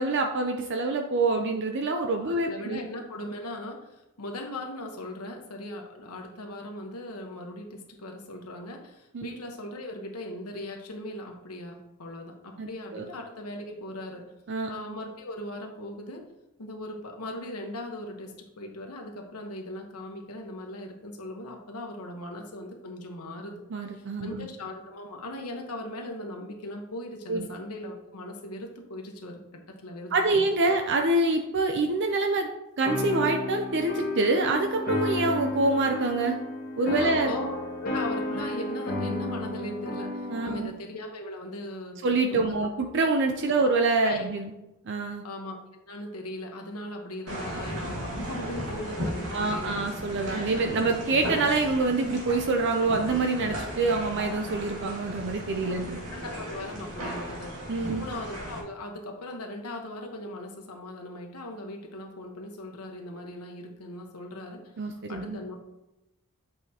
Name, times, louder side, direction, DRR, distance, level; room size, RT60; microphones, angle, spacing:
voice 1, 0.0-2.8 9.1-9.3 12.6-13.1 14.5-14.7 23.7-24.5 27.3-27.5 30.1-32.5 32.8-36.4 36.8-37.3 40.3-40.7 42.0-44.5 44.9-45.2 49.3-56.0 57.7-58.1 64.8-65.4, right 3 dB, 55° right, 4 dB, 0.5 m, -26 dB
voice 2, 2.2-3.8 4.2-14.2 14.7-16.2 16.6-23.6 23.9-29.4 29.7-30.7 37.0-42.0 42.3-42.5 43.5-43.6 44.0-44.2 45.2-49.8 54.3-54.4 55.7-55.8 56.1-57.6 57.9-65.6, left 1 dB, 80° left, 2 dB, 1.2 m, -39 dB
sound 1, 32.8-40.6, left 2 dB, 40° left, 1.5 m, -32 dB
sound 2, 47.3-58.6, equal, 80° right, 1.9 m, -36 dB
8.2 x 5.0 x 2.9 m, 0.94 s
head